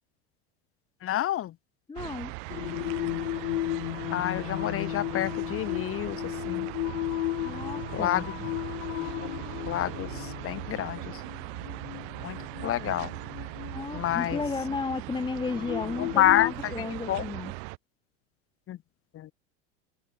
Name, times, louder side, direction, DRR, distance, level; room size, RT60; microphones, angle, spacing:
voice 1, 1.0-1.6 4.1-6.7 7.9-8.5 9.7-11.2 12.2-12.4 12.6-13.1 13.9-14.4 16.0-17.2 18.7-18.8 19.1-19.3, left 13 dB, 40° left, 2.5 m, -29 dB
voice 2, 1.9-2.3 7.4-8.2 13.7-17.5, left 4 dB, 15° left, 1.6 m, -33 dB
sound 1, 2.0-17.8, right 40 dB or more, 60° right, 1.3 m, -39 dB
Singing, 2.5-16.5, left 17 dB, 75° left, 2.5 m, -35 dB
hypercardioid pair, 100°, 35 cm